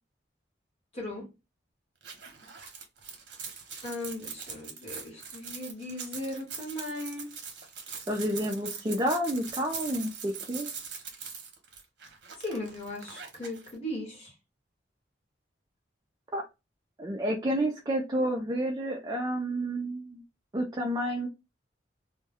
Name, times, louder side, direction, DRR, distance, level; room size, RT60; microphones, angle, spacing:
voice 1, 0.9-1.2 3.8-7.3 12.4-14.3, left 1 dB, 35° left, 1.1 m, -37 dB
sound 1, 2.0-13.7, right 6 dB, 65° right, 0.8 m, -42 dB
voice 2, 8.1-10.7 16.3-16.4 17.0-20.2 20.5-21.3, right 1 dB, 20° right, 0.4 m, -30 dB
2.2 x 2.1 x 3.4 m
head